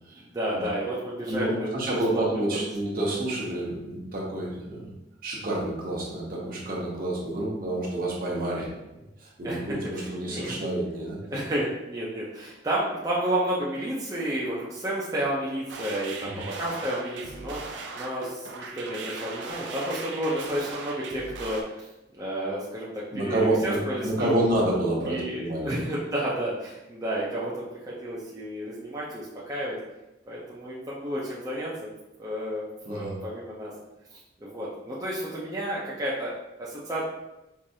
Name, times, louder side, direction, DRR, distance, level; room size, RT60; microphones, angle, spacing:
voice 1, 0.2-1.7 2.1-2.2 2.5-2.6 9.4-9.6 9.9-10.5 11.3-21.9 22.1-24.4 25.1-29.8 30.3-31.9 32.2-33.7 34.1-37.0, right 1 dB, 20° right, -7 dB, 0.5 m, -31 dB
voice 2, 1.3-4.9 5.2-11.2 16.2-16.4 23.1-25.8 32.8-33.2, right 1 dB, 50° right, -4 dB, 1.0 m, -29 dB
sound 1, 15.7-21.6, right 4 dB, 75° right, 0.5 m, -39 dB
4.6 x 2.5 x 2.7 m, 0.96 s
head